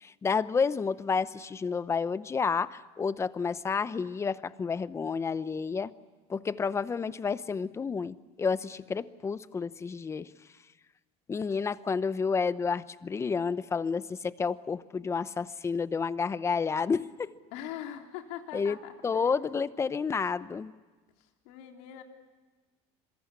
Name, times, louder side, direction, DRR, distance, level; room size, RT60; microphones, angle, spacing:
voice 1, 0.0-5.9 6.3-10.3 11.3-17.3 18.5-18.8 19.0-20.7, left 5 dB, 20° left, 15 dB, 0.8 m, -30 dB
voice 2, 17.5-19.3 21.2-22.0, left 10 dB, 80° left, 3 dB, 3.6 m, -42 dB
26.0 x 23.0 x 9.7 m, 1.3 s
cardioid pair, 135°, 15 cm